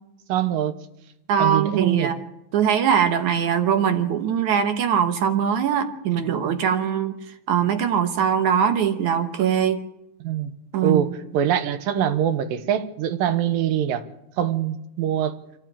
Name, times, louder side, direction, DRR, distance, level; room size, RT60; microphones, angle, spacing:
voice 1, 0.3-0.7 1.4-2.1 10.2-10.5 10.8-14.0 14.4-15.4, right 10 dB, 85° right, 11 dB, 2.8 m, -23 dB
voice 2, 1.3-2.2 2.5-7.2 7.5-9.8 10.7-11.1, right 8 dB, 65° right, 8 dB, 2.4 m, -21 dB
24.0 x 14.0 x 8.8 m, 0.86 s
omnidirectional pair, 3.9 m